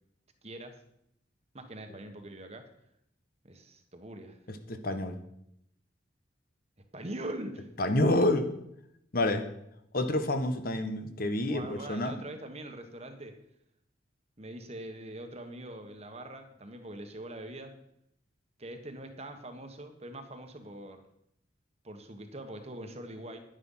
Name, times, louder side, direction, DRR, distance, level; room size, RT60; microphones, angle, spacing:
voice 1, 0.4-0.7 1.5-2.6 3.4-4.4 6.9-7.7 11.4-13.3 14.4-17.7 18.6-21.0 21.8-23.4, right 1 dB, 35° right, 6 dB, 1.4 m, -43 dB
voice 2, 4.5-5.2 7.8-8.5 9.1-9.4 9.9-12.2, left 1 dB, 50° left, 8 dB, 1.2 m, -28 dB
10.5 x 10.0 x 5.6 m, 0.76 s
head